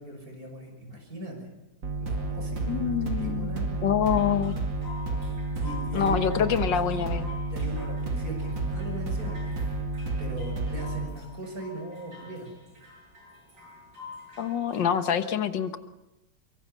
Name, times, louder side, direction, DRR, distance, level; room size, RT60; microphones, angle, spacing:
voice 1, 0.0-1.5 2.0-3.7 5.6-7.0 7.5-9.6 10.2-12.5, right 2 dB, 50° right, 3 dB, 6.7 m, -39 dB
sound 1, 1.8-11.1, right 2 dB, 90° right, 3.0 m, -31 dB
voice 2, 2.7-4.6 5.9-7.3 14.4-15.8, left 8 dB, 85° left, 10 dB, 2.0 m, -26 dB
sound 2, 4.0-15.0, left 3 dB, 70° right, 8.4 m, -47 dB
24.0 x 23.5 x 5.6 m, 0.93 s
omnidirectional pair, 1.9 m